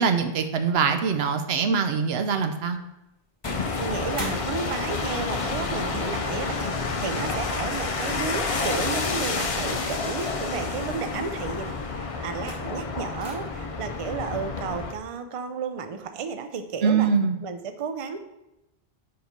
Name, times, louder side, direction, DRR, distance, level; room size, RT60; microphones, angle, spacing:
voice 1, 0.0-2.8 16.8-17.4, right 6 dB, 80° right, 7 dB, 0.9 m, -23 dB
sound 1, 3.4-14.9, left 4 dB, 40° left, 0.6 m, -29 dB
sound 2, 3.4-5.1 6.0-6.8 7.5-8.2 9.2-9.6 10.2-10.6 12.1-12.9 13.2-13.3, left 1 dB, 25° left, 1.7 m, -40 dB
voice 2, 3.8-6.6 7.0-17.1 17.4-18.2, right 5 dB, 45° right, 8 dB, 0.5 m, -33 dB
5.1 x 5.0 x 5.1 m, 0.92 s
omnidirectional pair, 1.0 m